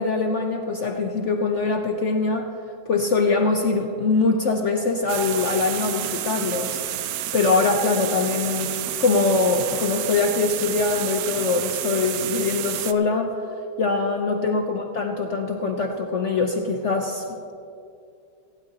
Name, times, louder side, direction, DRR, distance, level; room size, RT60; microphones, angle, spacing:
voice 1, 0.0-2.5 2.9-6.8 7.3-13.4 13.8-17.2, left 3 dB, 65° left, 3 dB, 0.7 m, -23 dB
sound 1, 5.1-12.9, right 12 dB, 90° right, 0.8 m, -30 dB
18.0 x 16.0 x 2.8 m, 2.6 s
omnidirectional pair, 2.1 m